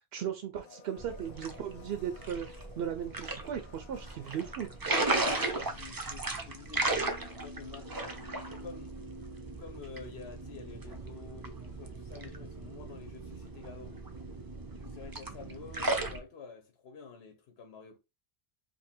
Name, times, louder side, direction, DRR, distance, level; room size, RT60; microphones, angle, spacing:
voice 1, 0.1-2.5 2.8-4.7, right 9 dB, 70° right, 0.8 m, -37 dB
Domestic sounds home sounds, 0.5-5.8 6.1-6.2, left 4 dB, 50° left, 0.8 m, -55 dB
sound 1, 1.0-16.2, right 2 dB, 30° right, 0.4 m, -36 dB
voice 2, 5.2-8.2 8.6-9.0 9.6-14.0 14.7-18.0, left 5 dB, 75° left, 0.9 m, -49 dB
2.7 x 2.6 x 4.2 m
omnidirectional pair, 1.1 m